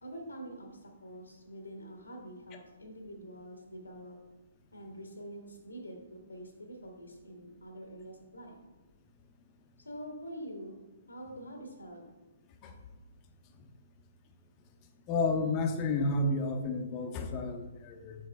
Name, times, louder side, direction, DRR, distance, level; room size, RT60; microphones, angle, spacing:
voice 1, 0.0-4.2 4.7-8.5 9.8-12.0, equal, 85° left, 2 dB, 1.3 m, -46 dB
voice 2, 15.1-18.1, left 2 dB, 30° left, 5 dB, 0.8 m, -31 dB
6.7 x 4.3 x 3.4 m, 1.1 s
figure-of-eight pair, 130°, 0 cm